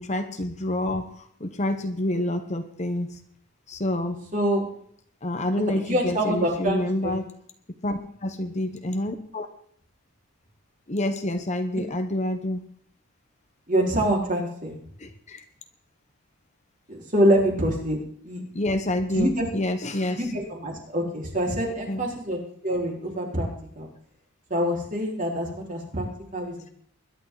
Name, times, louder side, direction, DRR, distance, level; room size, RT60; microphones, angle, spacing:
voice 1, 0.0-3.2 3.7-4.2 5.2-7.2 7.8-9.5 10.9-12.6 15.0-15.4 18.5-20.3 21.9-22.1, left 1 dB, 35° left, 7 dB, 1.1 m, -28 dB
voice 2, 4.3-4.6 5.9-7.2 13.7-14.8 16.9-18.0 18.2-18.4 19.1-19.5 20.1-23.5 23.8-23.9 24.5-26.1 26.3-26.7, equal, 40° right, -1 dB, 4.8 m, -25 dB
22.0 x 11.5 x 4.1 m, 0.62 s
head